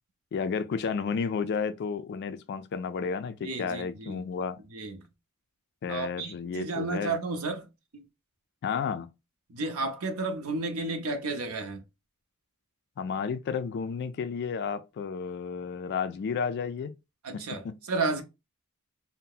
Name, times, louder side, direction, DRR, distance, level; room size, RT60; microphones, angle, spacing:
voice 1, 0.3-4.6 5.8-7.1 8.6-9.1 13.0-16.9 17.3-17.8, left 6 dB, 50° left, 0.3 m, -32 dB
voice 2, 3.4-4.2 4.7-5.0 5.9-7.7 7.9-8.0 9.5-11.8 17.2-18.2, right 3 dB, 70° right, 0.7 m, -32 dB
2.7 x 2.1 x 3.7 m
head